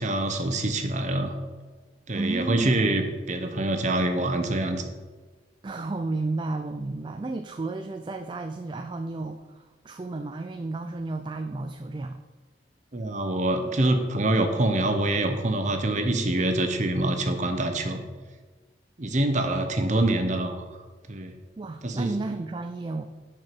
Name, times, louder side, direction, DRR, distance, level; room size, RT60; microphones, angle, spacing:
voice 1, 0.0-1.4 2.1-4.9 12.9-18.0 19.0-20.7 21.1-21.3 21.8-22.1, right 1 dB, 40° right, 6 dB, 0.9 m, -25 dB
voice 2, 2.1-2.9 5.6-12.2 19.4-20.1 21.6-23.0, right 2 dB, 25° right, 7 dB, 0.3 m, -33 dB
11.0 x 4.7 x 4.6 m, 1.4 s
head